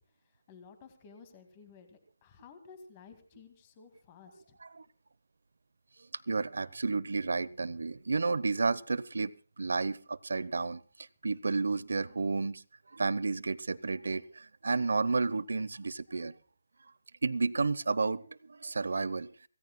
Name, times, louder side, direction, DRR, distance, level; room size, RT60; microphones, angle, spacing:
voice 1, 0.5-4.6, left 5 dB, 20° left, 8 dB, 2.1 m, -54 dB
voice 2, 6.3-12.6 12.9-16.3 17.2-19.5, right 3 dB, 85° right, 19 dB, 0.9 m, -32 dB
25.0 x 17.0 x 2.3 m, 0.39 s
hypercardioid pair, 175°, 0 cm